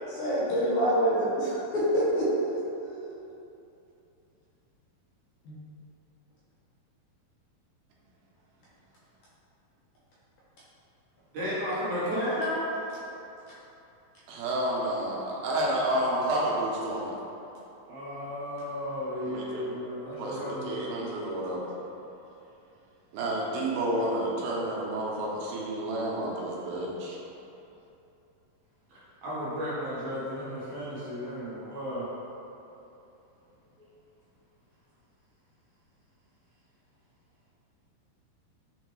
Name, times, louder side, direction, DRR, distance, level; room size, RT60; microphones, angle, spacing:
voice 1, 0.2-3.2 5.5-5.6, equal, 80° left, -9 dB, 1.9 m, -27 dB
voice 2, 11.3-12.7 17.9-20.9 28.9-32.1, equal, 65° right, -10 dB, 2.0 m, -33 dB
voice 3, 14.3-17.1 19.2-19.6 20.2-21.6 23.1-27.2, right 1 dB, 90° right, -4 dB, 2.5 m, -30 dB
6.2 x 2.2 x 3.0 m, 2.8 s
omnidirectional pair, 4.1 m